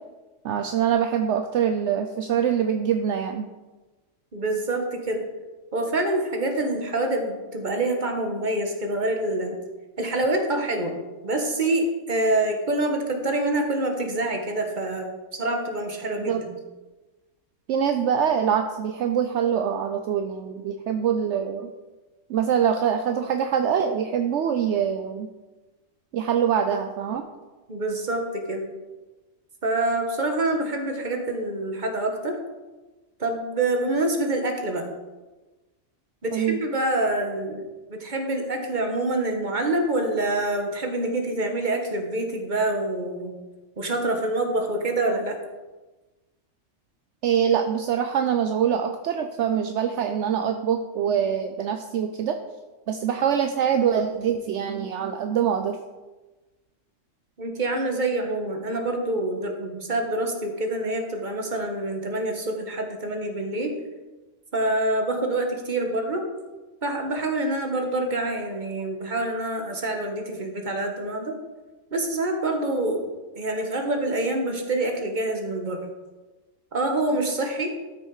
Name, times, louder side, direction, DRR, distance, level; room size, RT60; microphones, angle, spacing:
voice 1, 0.4-3.5 16.3-16.4 17.7-21.7 22.3-25.3 26.1-27.2 36.3-36.6 47.2-52.4 52.9-55.8, right 8 dB, 70° right, 6 dB, 0.9 m, -24 dB
voice 2, 4.3-5.2 5.7-9.6 10.0-10.9 11.2-15.1 15.3-16.5 27.7-28.6 29.6-32.4 33.2-34.8 36.2-37.6 37.9-43.3 43.8-45.4 57.4-63.7 64.5-66.2 66.8-71.4 71.9-73.0 73.3-75.8 76.7-77.7, right 2 dB, 40° right, 3 dB, 1.6 m, -26 dB
13.0 x 6.3 x 4.8 m, 1.2 s
omnidirectional pair, 1.3 m